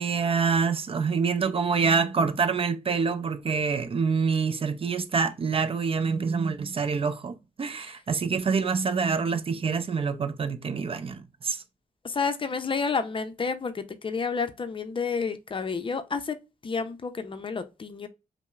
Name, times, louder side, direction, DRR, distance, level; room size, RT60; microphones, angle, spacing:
voice 1, 0.0-11.6, right 5 dB, 40° right, 0.4 m, -26 dB
voice 2, 12.0-16.4 16.6-18.1, left 5 dB, 35° left, 0.5 m, -30 dB
5.3 x 2.0 x 2.3 m
cardioid pair, 70°, 15 cm